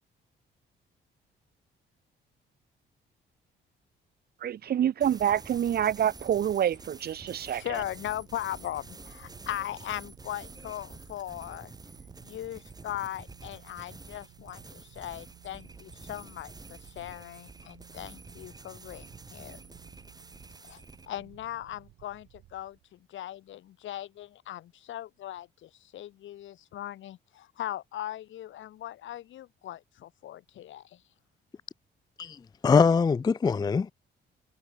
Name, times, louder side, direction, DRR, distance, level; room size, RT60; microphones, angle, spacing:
voice 1, 4.4-7.8, right 10 dB, 55° right, 0.7 m, -27 dB
sound 1, 5.0-21.1, right 3 dB, 20° right, 1.8 m, -48 dB
sound 2, 6.2-23.1, right 15 dB, 85° right, 4.0 m, -57 dB
voice 2, 7.5-11.7 12.2-19.6 20.6-20.8 21.1-31.0, left 12 dB, 75° left, 1.6 m, -39 dB
voice 3, 32.6-33.9, left 5 dB, 20° left, 0.4 m, -22 dB
cardioid pair, 90°, 20 cm